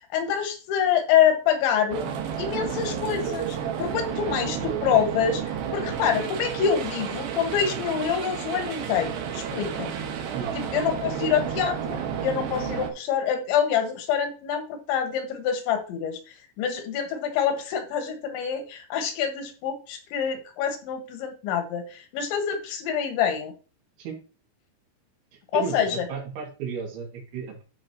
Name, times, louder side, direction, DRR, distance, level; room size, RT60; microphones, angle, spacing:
voice 1, 0.1-2.1 2.4-10.0 10.5-16.2 16.6-23.5 25.5-26.1, left 8 dB, 80° left, 5 dB, 3.7 m, -26 dB
sound 1, 1.9-12.9, right 8 dB, 65° right, 2.6 m, -31 dB
voice 2, 25.3-27.6, right 6 dB, 85° right, -1 dB, 4.4 m, -34 dB
12.5 x 5.5 x 2.9 m, 0.35 s
omnidirectional pair, 5.3 m